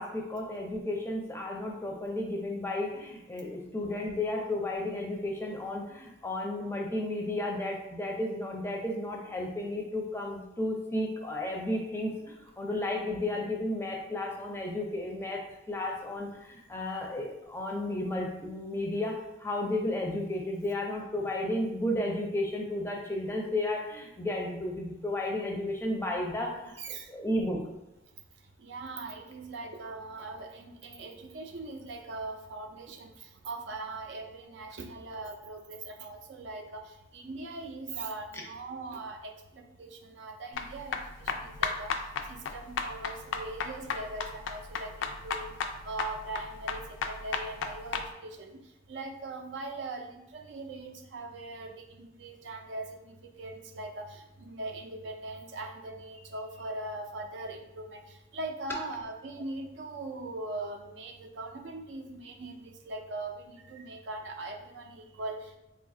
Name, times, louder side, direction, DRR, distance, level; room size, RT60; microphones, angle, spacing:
voice 1, 0.0-27.6, left 1 dB, 15° left, 0 dB, 0.4 m, -33 dB
voice 2, 26.8-27.1 28.6-41.9 42.3-45.5 45.8-48.6 48.9-65.6, right 2 dB, 70° right, 4 dB, 0.4 m, -41 dB
sound 1, 40.5-48.1, left 5 dB, 85° left, 0.3 m, -34 dB
2.7 x 2.4 x 3.7 m, 0.96 s
head